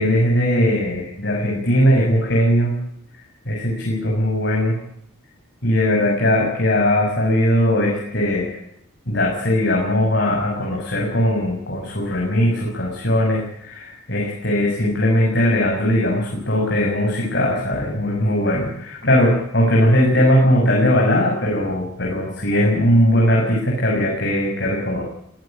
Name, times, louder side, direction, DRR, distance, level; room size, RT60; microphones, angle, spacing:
voice 1, 0.0-2.7 3.4-4.7 5.6-8.5 9.1-25.0, equal, 55° left, -1 dB, 6.6 m, -19 dB
21.5 x 17.0 x 9.1 m, 0.74 s
head